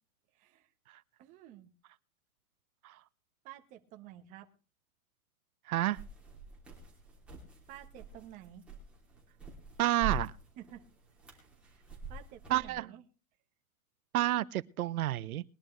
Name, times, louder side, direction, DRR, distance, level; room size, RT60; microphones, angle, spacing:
voice 1, 0.3-0.7 1.2-1.7 3.4-4.5 7.7-8.6 10.6-10.8 11.3-11.5 11.7-11.8 12.1-13.0, right 12 dB, 20° right, 1.0 m, -51 dB
voice 2, 5.7-6.0 9.8-10.3 12.5-12.9 14.1-15.4, right 14 dB, 80° right, 0.7 m, -30 dB
sound 1, 5.9-12.7, right 4 dB, 5° right, 2.8 m, -44 dB
21.0 x 11.0 x 3.2 m
supercardioid pair, 170°, 42 cm